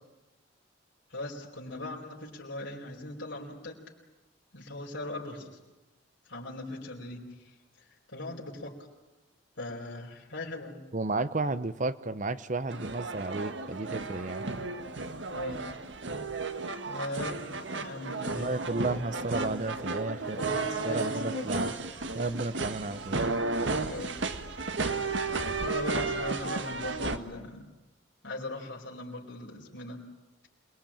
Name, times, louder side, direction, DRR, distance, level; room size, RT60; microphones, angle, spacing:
voice 1, 1.1-3.8 4.5-5.6 6.3-7.2 8.1-8.7 9.6-10.8 15.3-15.6 16.9-17.5 17.8-18.5 20.3-21.5 23.8-24.4 24.8-25.3 25.6-27.7 28.2-30.0, left 1 dB, 85° left, -3 dB, 4.8 m, -39 dB
voice 2, 10.9-14.4 18.3-20.6 20.8-21.7 22.1-23.2, right 3 dB, 40° right, 14 dB, 0.9 m, -33 dB
sound 1, 12.7-27.2, right 3 dB, 75° right, 1.6 m, -33 dB
27.5 x 20.5 x 8.9 m, 1.1 s
head